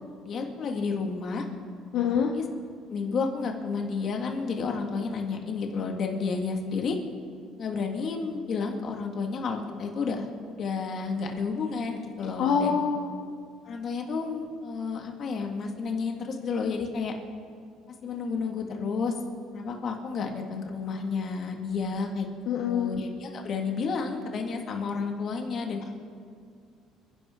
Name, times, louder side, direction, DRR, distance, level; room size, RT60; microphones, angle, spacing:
voice 1, 0.2-1.4 2.1-2.4 2.9-7.0 7.6-12.8 13.7-17.1 18.0-19.1 19.5-22.3 22.6-25.8, left 4 dB, 45° left, 2 dB, 2.0 m, -31 dB
voice 2, 1.9-2.3 12.4-13.1 22.5-22.9, left 7 dB, 65° left, 1 dB, 1.0 m, -25 dB
29.5 x 11.0 x 3.8 m, 2.2 s
cardioid pair, 130°, 0 cm